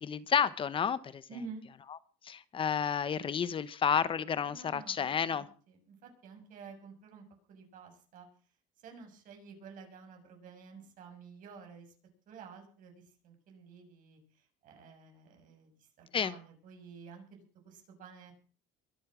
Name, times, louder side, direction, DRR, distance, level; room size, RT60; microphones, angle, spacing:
voice 1, 0.0-1.2 2.2-5.4 16.1-16.3, left 7 dB, 35° left, 16 dB, 1.1 m, -31 dB
voice 2, 1.3-1.7 4.5-8.3 8.8-11.9 12.3-17.4 17.6-18.3, right 5 dB, 55° right, 3 dB, 7.2 m, -51 dB
23.5 x 8.8 x 6.2 m, 0.41 s
cardioid pair, 110°, 16 cm